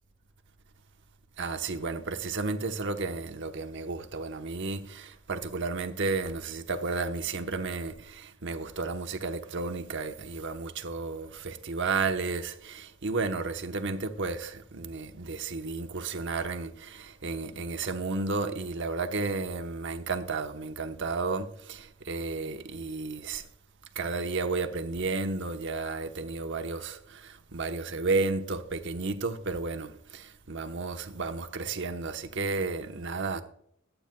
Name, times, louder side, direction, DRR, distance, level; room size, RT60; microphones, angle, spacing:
voice 1, 1.4-23.4 23.9-33.4, right 3 dB, 60° right, 1.0 m, -32 dB
23.0 x 9.0 x 2.3 m
head